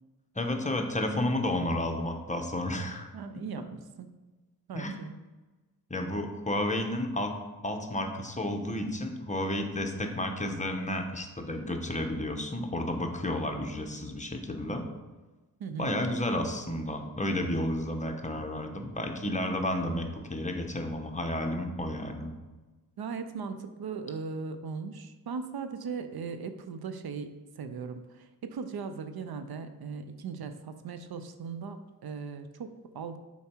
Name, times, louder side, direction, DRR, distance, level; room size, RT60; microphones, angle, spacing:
voice 1, 0.3-3.1 4.7-4.9 5.9-7.3 7.6-14.8 15.8-22.4, left 1 dB, 20° left, 3 dB, 0.9 m, -31 dB
voice 2, 3.1-4.2 4.7-5.1 15.6-16.0 23.0-27.3 27.6-33.2, right 5 dB, 70° right, 9 dB, 0.7 m, -38 dB
7.0 x 4.6 x 4.5 m, 1.2 s
wide cardioid pair, 85°, 38 cm